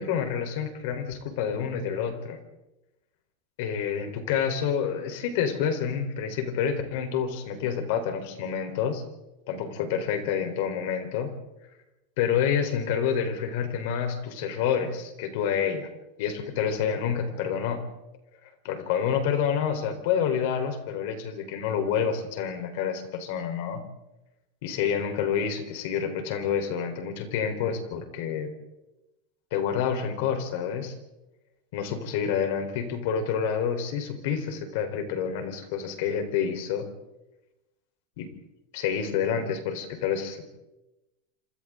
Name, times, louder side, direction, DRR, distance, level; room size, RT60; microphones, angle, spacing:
voice 1, 0.0-2.4 3.6-9.0 9.5-11.3 12.2-15.9 16.2-17.8 18.6-23.8 24.6-28.5 29.5-30.9 31.7-36.9 38.2-38.3 38.7-40.5, left 7 dB, 55° left, 6 dB, 4.0 m, -28 dB
27.0 x 27.0 x 3.8 m, 0.97 s
supercardioid pair, 170°, 0 cm